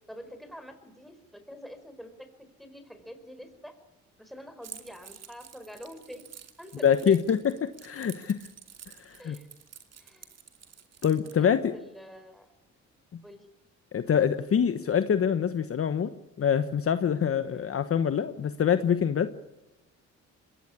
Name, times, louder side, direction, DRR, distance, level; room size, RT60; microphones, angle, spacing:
voice 1, 0.1-3.7 4.2-6.3 6.6-7.3 9.2-9.5 10.0-10.3 11.3-12.5 13.2-13.4 17.5-17.7, equal, ahead, 8 dB, 4.8 m, -46 dB
Keys jangling, 4.6-11.4, right 8 dB, 55° right, 2.7 m, -49 dB
voice 2, 6.8-8.4 9.0-9.4 11.0-11.7 13.9-16.1 16.4-19.3, left 8 dB, 50° left, 10 dB, 1.2 m, -25 dB
22.0 x 17.5 x 9.8 m, 0.97 s
cardioid pair, 90°, 30 cm